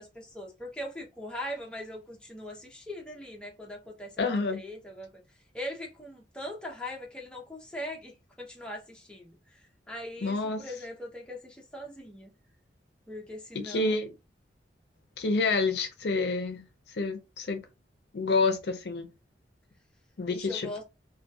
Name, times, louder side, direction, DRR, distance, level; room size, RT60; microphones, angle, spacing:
voice 1, 0.0-5.1 5.5-12.3 13.1-14.0 20.3-20.8, left 1 dB, 5° left, 0.6 m, -41 dB
voice 2, 4.2-4.6 10.2-10.7 13.5-14.1 15.2-16.6 16.9-17.6 18.1-19.1 20.2-20.7, left 3 dB, 65° left, 0.5 m, -28 dB
2.2 x 2.2 x 2.6 m
head